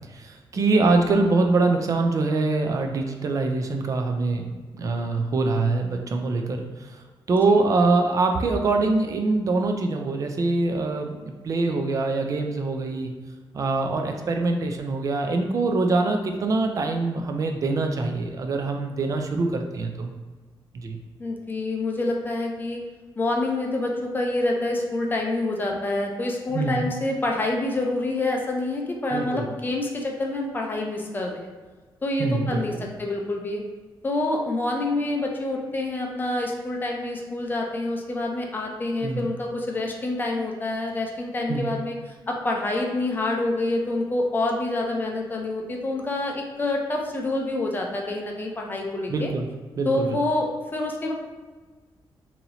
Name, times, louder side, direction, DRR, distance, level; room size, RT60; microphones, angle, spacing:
voice 1, 0.0-13.1 13.5-20.1 20.7-21.0 26.5-26.9 29.1-29.4 32.2-32.8 39.0-39.3 41.5-41.7 49.1-49.5 49.8-50.2, right 3 dB, 40° right, 4 dB, 0.4 m, -24 dB
voice 2, 21.2-22.8 23.2-31.5 32.0-33.6 34.0-49.3 49.8-51.1, left 2 dB, 20° left, 0 dB, 0.5 m, -27 dB
2.9 x 2.7 x 4.0 m, 1.4 s
wide cardioid pair, 155°, 9 cm